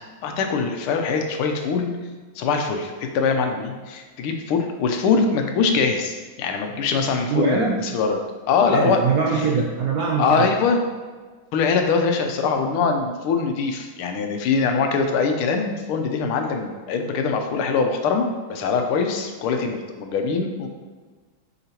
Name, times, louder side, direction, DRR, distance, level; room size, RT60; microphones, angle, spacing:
voice 1, 0.2-1.9 2.4-8.2 8.5-9.0 10.2-10.8 11.5-20.7, left 5 dB, 85° left, 4 dB, 1.6 m, -23 dB
voice 2, 7.3-7.8 8.7-10.5, right 4 dB, 80° right, -1 dB, 0.8 m, -22 dB
6.8 x 6.5 x 2.9 m, 1.4 s
omnidirectional pair, 2.3 m